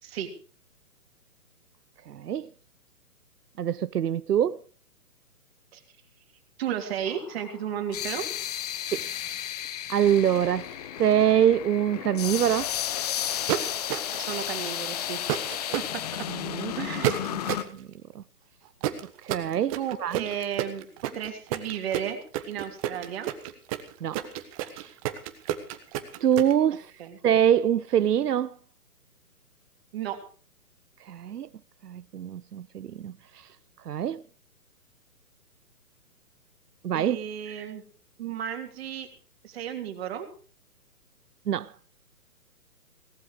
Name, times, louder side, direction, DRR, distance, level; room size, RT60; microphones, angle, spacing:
voice 1, 2.1-2.5 3.6-4.6 8.9-9.1 9.9-12.7 16.3-16.7 17.5-17.9 18.1-18.2 19.2-20.2 24.0-24.2 24.7-24.9 26.2-26.9 27.2-28.5 31.0-31.5 31.8-33.5 33.9-34.2 36.8-37.2 37.6-37.7 41.5-41.7, right 9 dB, 90° right, 0.7 m, -25 dB
voice 2, 6.6-8.2 14.1-15.2 15.7-15.8 16.8-17.4 19.7-22.2 22.5-23.3 27.0-27.2 29.9-30.2 36.9-37.8 38.2-39.1 39.4-40.3, right 9 dB, 40° right, 3.2 m, -33 dB
sound 1, 7.1-17.6, left 11 dB, 25° left, 0.8 m, -33 dB
sound 2, 13.5-14.3 15.3-15.9 17.0-17.7 18.8-26.5, right 13 dB, 25° right, 1.3 m, -30 dB
18.0 x 12.5 x 4.9 m
hypercardioid pair, 150°, 45 cm